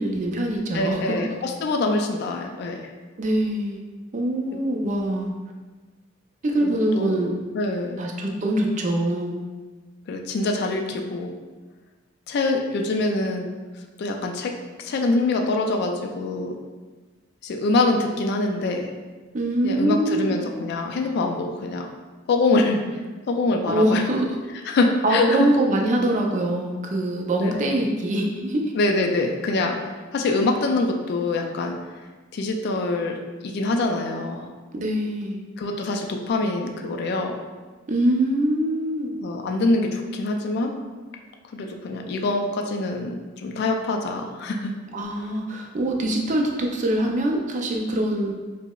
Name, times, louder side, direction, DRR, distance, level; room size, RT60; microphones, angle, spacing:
voice 1, 0.0-1.2 3.2-3.8 4.1-5.3 6.4-7.3 8.0-9.4 19.3-20.4 23.7-24.3 25.0-28.6 34.7-35.4 37.9-39.1 44.9-48.3, right 1 dB, 40° right, 1 dB, 0.4 m, -23 dB
voice 2, 0.7-2.9 6.6-7.2 7.5-8.0 10.1-11.3 12.3-13.5 14.0-16.5 17.4-18.9 19.6-21.9 22.3-22.8 23.3-24.1 24.7-25.5 27.4-27.5 28.7-31.8 32.3-34.5 35.6-37.4 39.2-40.7 41.5-44.7, left 2 dB, 55° left, 3 dB, 0.3 m, -24 dB
4.6 x 2.0 x 2.3 m, 1.3 s
head